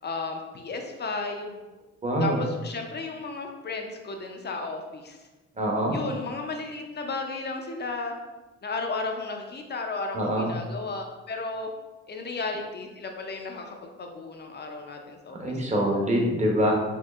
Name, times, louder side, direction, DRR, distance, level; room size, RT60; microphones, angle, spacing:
voice 1, 0.0-1.6 2.2-5.3 5.9-8.1 8.6-11.7 12.1-15.6, left 3 dB, 35° left, 3 dB, 0.5 m, -34 dB
voice 2, 2.0-2.4 5.6-6.0 10.1-10.5 15.4-16.7, equal, 25° right, -1 dB, 0.9 m, -24 dB
4.3 x 2.8 x 2.4 m, 1.2 s
cardioid pair, 90°, 30 cm